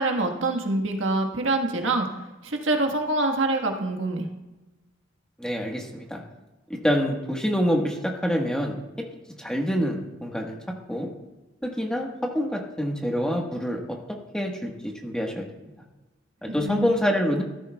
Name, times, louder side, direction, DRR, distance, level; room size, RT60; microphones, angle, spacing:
voice 1, 0.0-4.3 16.5-16.9, right 2 dB, 85° right, 3 dB, 1.5 m, -25 dB
voice 2, 5.4-6.2 6.7-9.1 9.4-11.1 11.6-15.5 16.4-17.4, equal, 5° left, 1 dB, 1.4 m, -27 dB
15.0 x 13.0 x 2.3 m, 1.1 s
head